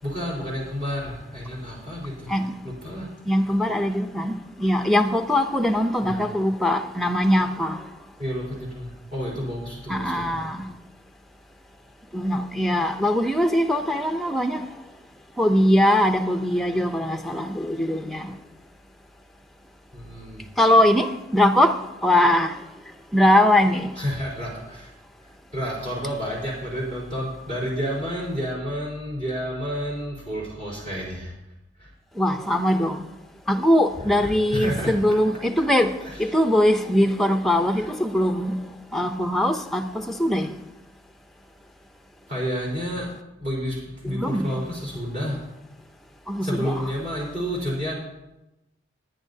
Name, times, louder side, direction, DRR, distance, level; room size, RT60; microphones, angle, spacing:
voice 1, 0.0-2.4 2.6-3.1 6.0-6.2 8.2-10.3 19.9-20.5 24.0-24.9 25.2-31.3 31.8-31.9 34.0-34.9 36.0-36.3 37.7-37.9 42.3-43.1 43.4-45.4 46.4-47.9, equal, 40° right, 4.1 m, -30 dB
voice 2, 3.3-7.8 9.9-10.6 12.1-14.6 15.4-18.3 20.6-21.7 22.0-22.6 23.1-23.9 32.2-33.0 33.5-35.9 36.2-38.6 38.9-40.5 44.0-44.5 46.3-46.9, left 1 dB, ahead, 0.6 m, -21 dB
21.5 x 9.8 x 2.8 m
head